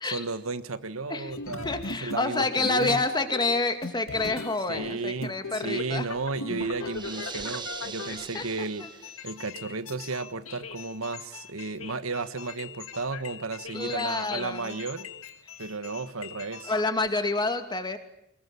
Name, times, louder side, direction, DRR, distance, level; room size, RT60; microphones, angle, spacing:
voice 1, 0.0-3.0 4.7-15.1 15.6-16.7, right 3 dB, 80° right, 1.5 m, -34 dB
sound 1, 1.3-3.1 3.3-3.5 3.8-4.9 5.2-17.1 17.3-17.4, left 4 dB, 75° left, 2.0 m, -40 dB
voice 2, 1.6-6.1 8.3-8.9 13.7-14.8 16.7-18.0, left 3 dB, 20° left, 2.5 m, -28 dB
sound 2, 6.9-9.4, right 5 dB, 20° right, 1.3 m, -40 dB
25.0 x 21.5 x 9.8 m
head